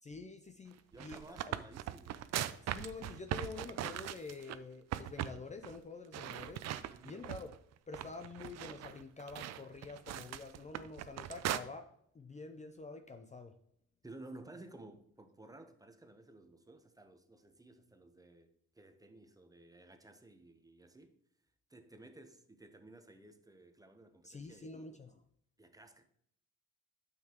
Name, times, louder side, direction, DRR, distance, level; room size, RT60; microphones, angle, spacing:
voice 1, 0.0-1.6 2.6-6.6 7.0-7.6 7.9-13.6 24.2-25.2, left 4 dB, 25° left, 0.5 m, -48 dB
sound 1, 0.8-4.6 4.9-5.4 5.6-5.8 6.1-7.6 7.9-11.6, right 12 dB, 60° right, 0.5 m, -40 dB
voice 2, 0.9-2.3 6.9-7.2 14.0-21.2 21.7-24.7 25.6-26.0, right 2 dB, 10° right, 0.8 m, -55 dB
9.1 x 5.9 x 2.9 m
cardioid pair, 90°, 30 cm